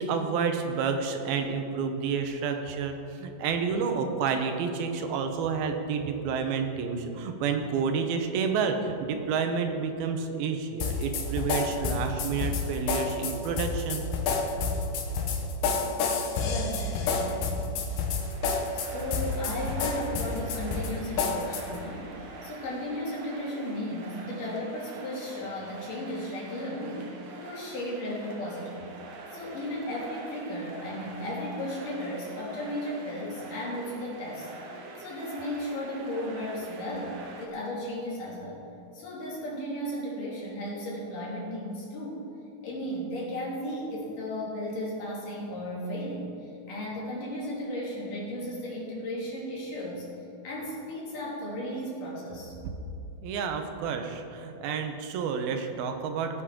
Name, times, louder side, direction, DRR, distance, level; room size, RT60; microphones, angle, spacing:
voice 1, 0.0-14.0 53.2-56.4, right 5 dB, 80° right, 5 dB, 2.7 m, -30 dB
sound 1, 10.8-21.8, left 4 dB, 90° left, 3.1 m, -29 dB
voice 2, 16.4-17.5 18.7-27.1 27.4-28.9 29.3-34.5 35.0-38.6 38.9-42.2 42.6-46.3 46.7-50.1 50.4-52.5, left 1 dB, 60° left, -5 dB, 3.9 m, -35 dB
sound 2, 18.0-37.5, right 3 dB, 65° right, 1.6 m, -45 dB
19.0 x 8.8 x 3.7 m, 2.8 s
omnidirectional pair, 4.3 m